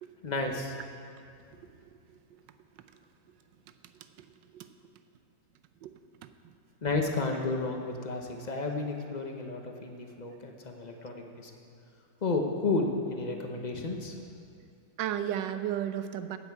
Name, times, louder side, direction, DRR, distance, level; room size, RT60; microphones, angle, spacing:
voice 1, 0.2-0.8 6.8-11.5 12.2-14.2, left 3 dB, 35° left, 2 dB, 0.7 m, -32 dB
voice 2, 5.8-6.5 15.0-16.4, right 10 dB, 80° right, 10 dB, 1.3 m, -34 dB
17.0 x 8.2 x 4.7 m, 2.4 s
omnidirectional pair, 2.0 m